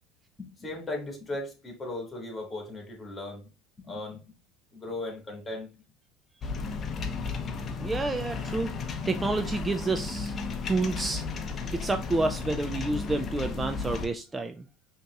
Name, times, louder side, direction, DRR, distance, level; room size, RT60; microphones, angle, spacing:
voice 1, 0.6-3.4 3.8-4.2 4.7-5.7, left 2 dB, 20° left, 1 dB, 1.8 m, -37 dB
sound 1, 6.4-14.1, left 4 dB, 35° left, 0.7 m, -34 dB
voice 2, 7.8-8.8 9.1-10.4 10.7-11.2 11.7-14.6, right 3 dB, 15° right, 7 dB, 0.3 m, -29 dB
5.1 x 2.9 x 2.3 m, 0.33 s
supercardioid pair, 100°, 0 cm